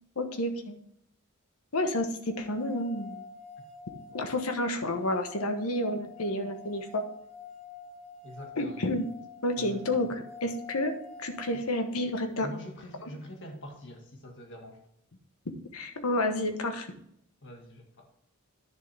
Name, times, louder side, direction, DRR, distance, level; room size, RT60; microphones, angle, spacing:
voice 1, 0.2-0.8 1.7-3.2 4.1-7.1 8.6-9.1 9.4-10.9 11.2-12.5 15.7-16.9, left 1 dB, 80° left, 7 dB, 1.2 m, -30 dB
sound 1, 2.3-12.4, left 4 dB, 5° left, 1.7 m, -48 dB
voice 2, 8.2-8.9 9.6-10.1 11.5-11.6 12.4-14.8 17.4-18.1, equal, 55° left, 2 dB, 2.0 m, -45 dB
10.5 x 7.1 x 3.5 m, 0.72 s
head